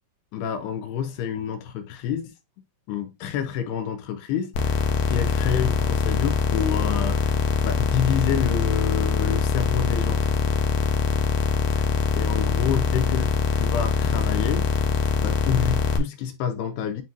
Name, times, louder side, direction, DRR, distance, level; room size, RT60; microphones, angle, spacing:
voice 1, 0.3-2.3 2.9-7.3 7.6-10.2 12.2-14.7 15.2-17.0, left 8 dB, 85° left, 3.2 m, -28 dB
sound 1, 4.5-16.0, left 5 dB, 65° left, 2.6 m, -23 dB
9.3 x 3.9 x 2.8 m
omnidirectional pair, 4.6 m